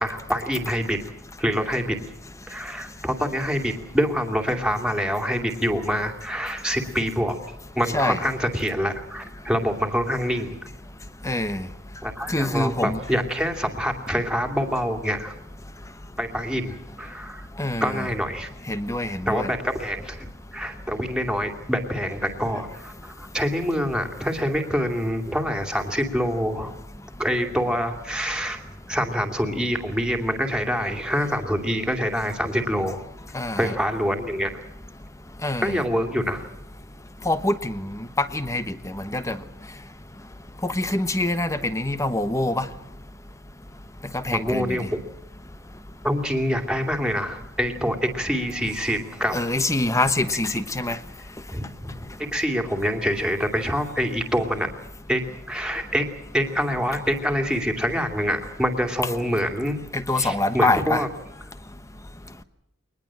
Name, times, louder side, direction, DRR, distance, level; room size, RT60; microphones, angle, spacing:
voice 1, 0.0-1.0 1.4-2.0 2.5-7.4 7.8-10.6 12.0-15.3 16.2-17.5 17.8-18.5 19.3-26.8 27.2-28.6 28.9-33.0 33.6-34.5 35.6-36.5 44.3-45.0 46.0-49.4 51.5-51.9 52.3-54.7 55.1-55.2 55.5-56.0 56.3-59.8 60.2-61.1, equal, 5° right, 5 dB, 2.6 m, -26 dB
voice 2, 11.2-11.6 12.3-13.0 17.6-18.1 18.7-19.5 33.3-33.7 35.4-35.8 37.2-39.4 40.6-42.7 44.1-44.8 49.3-51.0 59.9-61.0, left 2 dB, 15° left, 12 dB, 1.1 m, -25 dB
22.5 x 20.0 x 7.6 m, 0.82 s
head